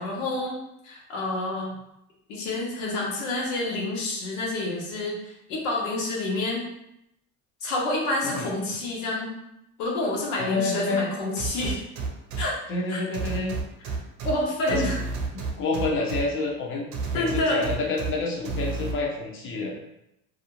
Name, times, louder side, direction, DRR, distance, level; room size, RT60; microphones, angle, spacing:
voice 1, 0.0-1.7 2.3-6.7 7.6-9.3 9.8-11.8 12.4-12.5 12.9-13.0 14.2-15.0 17.1-17.6, left 2 dB, 80° left, -3 dB, 0.9 m, -28 dB
voice 2, 10.4-11.1 12.7-13.5 14.7-14.9 15.6-19.8, left 3 dB, 35° left, -1 dB, 0.6 m, -28 dB
sound 1, 11.4-12.4 13.1-14.3 14.7-16.2 16.9-18.1 18.5-18.9, right 4 dB, 50° right, 0.7 m, -30 dB
2.4 x 2.0 x 3.0 m, 0.82 s
supercardioid pair, 95°, 36 cm